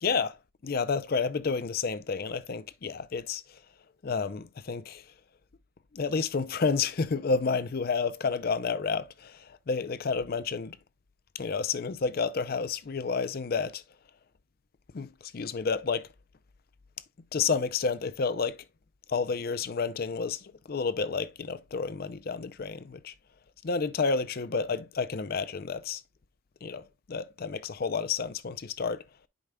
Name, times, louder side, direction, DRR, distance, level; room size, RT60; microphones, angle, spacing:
voice 1, 0.0-0.4 0.6-3.4 4.0-5.0 5.9-10.8 11.3-13.8 14.9-16.1 17.3-18.6 19.1-23.1 23.6-26.0 26.6-29.0, left 5 dB, 45° left, 0.5 m, -30 dB
9.9 x 4.9 x 2.2 m
head